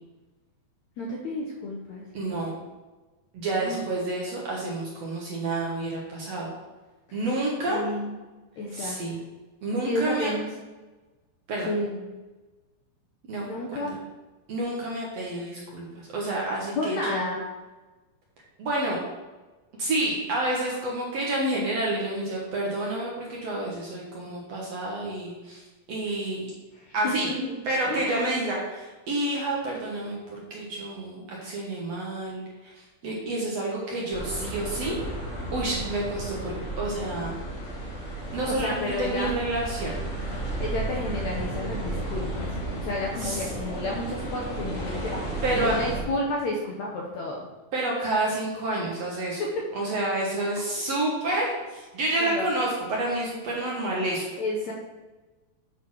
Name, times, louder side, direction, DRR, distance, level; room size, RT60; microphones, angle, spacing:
voice 1, 1.0-2.0 3.6-3.8 7.1-7.2 7.7-8.2 8.6-9.0 9.8-10.5 11.7-12.0 13.4-14.0 16.8-17.4 26.7-27.6 27.9-28.3 38.6-39.3 40.6-42.5 42.8-47.5 49.4-49.5 50.8-51.0 52.2-52.4 54.4-54.7, left 2 dB, 70° left, -2 dB, 1.8 m, -31 dB
voice 2, 2.1-2.5 3.3-6.5 7.1-7.8 8.7-9.2 9.6-10.4 11.5-11.7 13.3-13.9 14.5-17.3 18.6-19.0 19.8-26.5 26.9-27.3 27.7-35.0 35.5-37.3 38.3-39.9 43.2-43.5 45.4-45.7 47.7-49.4 49.7-51.4 51.9-54.3, right 2 dB, 60° right, -3 dB, 1.9 m, -29 dB
sound 1, 34.1-46.0, right 1 dB, 30° left, 1.4 m, -33 dB
8.5 x 3.9 x 6.2 m, 1.2 s
omnidirectional pair, 4.2 m